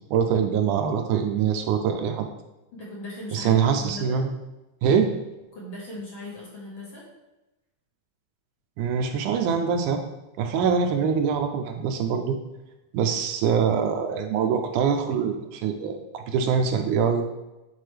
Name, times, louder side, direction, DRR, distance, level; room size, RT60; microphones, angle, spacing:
voice 1, 0.1-2.3 3.3-4.3 4.8-5.1 8.8-10.0 10.4-12.4 12.9-17.2, right 7 dB, 80° right, 5 dB, 2.0 m, -24 dB
voice 2, 2.8-4.2 5.5-7.0, left 2 dB, 45° left, -5 dB, 1.9 m, -38 dB
9.3 x 4.3 x 3.3 m, 0.99 s
omnidirectional pair, 3.7 m